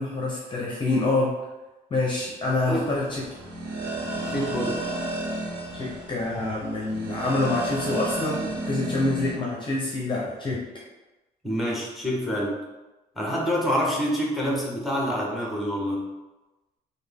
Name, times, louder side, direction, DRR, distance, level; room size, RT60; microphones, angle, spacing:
voice 1, 0.0-1.4 1.9-3.3 5.7-10.6, left 2 dB, 30° left, -4 dB, 0.7 m, -26 dB
sound 1, 2.4-9.3, right 2 dB, 75° right, 0.9 m, -33 dB
voice 2, 4.3-4.8 11.4-12.6 13.1-16.1, equal, ahead, -3 dB, 0.9 m, -26 dB
3.3 x 2.3 x 3.4 m, 1.1 s
cardioid pair, 110°, 17 cm